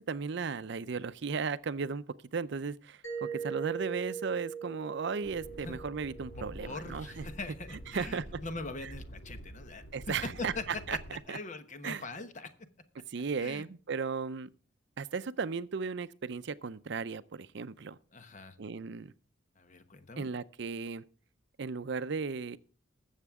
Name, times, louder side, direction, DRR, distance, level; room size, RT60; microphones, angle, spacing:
voice 1, 0.0-2.0 2.3-7.2 7.9-8.3 9.9-11.0 11.3-11.4 11.8-12.0 13.1-14.5 15.0-18.0 18.6-19.1 20.2-21.0 21.6-22.6, right 5 dB, 65° right, 0.5 m, -35 dB
Mallet percussion, 3.0-7.6, right 7 dB, 75° left, 2.3 m, -41 dB
sound 1, 5.2-11.2, equal, 60° left, 1.8 m, -47 dB
voice 2, 6.3-9.8 10.2-10.6 10.9-11.0 11.3-12.5 13.4-13.6 18.1-18.6 19.6-20.3, left 3 dB, 40° left, 1.1 m, -42 dB
20.5 x 7.3 x 3.6 m
head